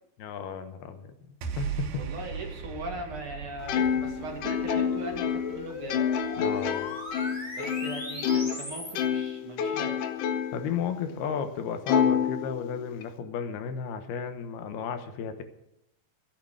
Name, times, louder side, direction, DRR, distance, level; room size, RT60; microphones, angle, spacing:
voice 1, 0.2-1.1 1.6-1.9 6.4-6.9 10.5-15.4, left 7 dB, 85° left, 7 dB, 3.2 m, -34 dB
sound 1, 1.4-7.9, right 7 dB, 80° right, 3.1 m, -39 dB
voice 2, 1.9-6.1 7.6-10.0, right 2 dB, 40° right, 2 dB, 2.3 m, -39 dB
Plucked string instrument, 3.7-8.6 9.0-10.7 11.1-11.2 11.9-13.0, left 8 dB, 70° left, 2.1 m, -28 dB
sound 2, 3.7-8.9, left 1 dB, 15° left, 3.7 m, -39 dB
14.5 x 9.0 x 6.6 m, 0.83 s
omnidirectional pair, 4.4 m